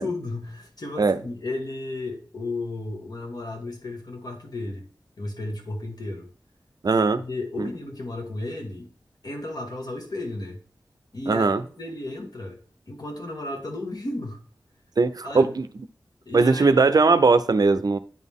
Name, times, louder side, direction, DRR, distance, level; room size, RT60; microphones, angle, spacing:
voice 1, 0.0-4.8 5.2-6.3 7.2-8.9 9.2-10.6 11.1-12.6 12.9-14.4 15.2-15.5 16.3-16.8, left 2 dB, 60° left, 2 dB, 1.7 m, -33 dB
voice 2, 6.8-7.2 7.6-7.7 11.3-11.6 15.0-15.7 16.3-18.0, right 4 dB, 60° right, 12 dB, 0.5 m, -19 dB
9.1 x 4.1 x 3.6 m, 0.43 s
wide cardioid pair, 85°, 8 cm